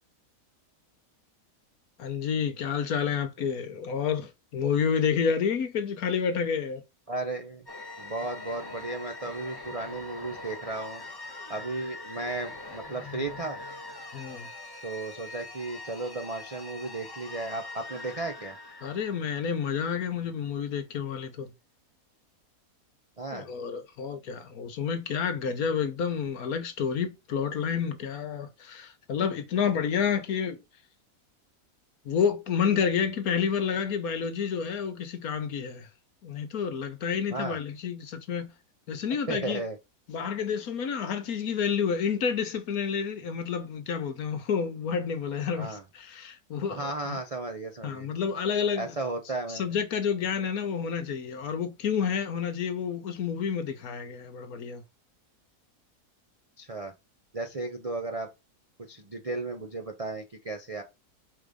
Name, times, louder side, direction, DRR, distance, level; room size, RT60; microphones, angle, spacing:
voice 1, 2.0-6.8 14.1-14.5 18.8-21.5 23.3-30.6 32.0-35.9 36.2-38.5 38.9-39.6 40.1-47.2 47.8-48.9 49.5-54.8, left 7 dB, 65° left, 1.4 m, -29 dB
voice 2, 7.1-7.7 8.0-11.0 11.5-13.6 14.8-18.6 23.2-23.5 37.3-37.6 39.3-39.8 45.6-45.8 46.7-48.1 48.8-49.7 56.6-56.9 57.3-58.3 58.8-60.8, right 2 dB, 45° right, 0.4 m, -34 dB
sound 1, 7.7-20.2, left 2 dB, 15° left, 1.1 m, -43 dB
4.8 x 3.9 x 5.2 m
omnidirectional pair, 1.7 m